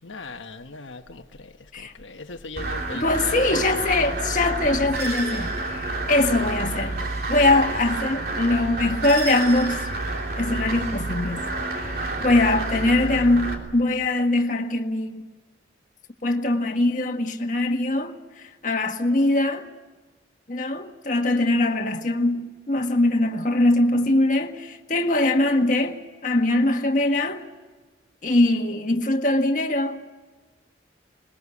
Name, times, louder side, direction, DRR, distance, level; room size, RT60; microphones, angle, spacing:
voice 1, 0.0-3.4, left 3 dB, 85° left, 1.3 m, -39 dB
sound 1, 2.6-13.5, right 2 dB, 50° right, 3.2 m, -29 dB
voice 2, 2.9-5.8 6.1-9.9 10.4-11.5 11.8-15.3 16.2-19.7 20.5-27.4 28.2-30.0, left 2 dB, 40° left, 1.7 m, -22 dB
21.0 x 21.0 x 8.5 m
head